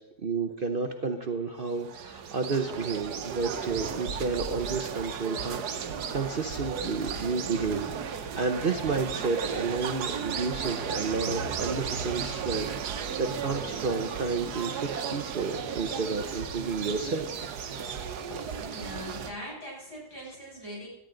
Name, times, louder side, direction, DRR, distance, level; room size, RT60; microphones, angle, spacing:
voice 1, 0.2-17.3, right 4 dB, 45° right, 5 dB, 0.8 m, -31 dB
sound 1, 1.7-19.3, right 7 dB, 80° right, 1.5 m, -34 dB
voice 2, 18.3-20.9, equal, 80° left, -4 dB, 6.9 m, -41 dB
18.0 x 12.0 x 3.9 m, 0.94 s
omnidirectional pair, 1.7 m